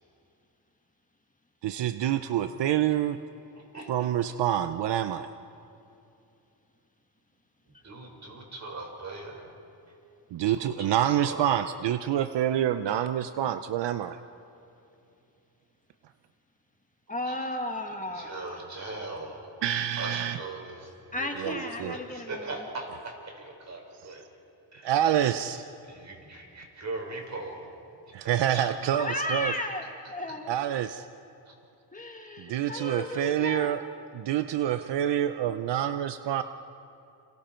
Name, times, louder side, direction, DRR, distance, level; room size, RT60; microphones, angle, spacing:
voice 1, 1.6-3.2 3.9-5.3 10.3-14.2 19.6-20.4 21.4-21.9 24.8-25.6 28.1-29.5 30.5-31.0 32.4-33.8 34.1-36.4, right 11 dB, 75° right, 10 dB, 0.8 m, -27 dB
voice 2, 3.5-3.9 7.7-9.5 9.9-10.0 10.4-11.5 17.2-17.6 17.9-19.5 20.0-24.2 24.7-25.0 25.8-27.7 28.2-29.2 30.0-30.4 31.4-31.5, right 2 dB, 40° right, 1 dB, 5.2 m, -40 dB
voice 3, 17.1-18.4 21.1-22.3 29.0-30.5 31.9-33.8, left 1 dB, 20° left, 3 dB, 1.8 m, -34 dB
30.0 x 26.5 x 4.5 m, 2.7 s
cardioid pair, 105°, 42 cm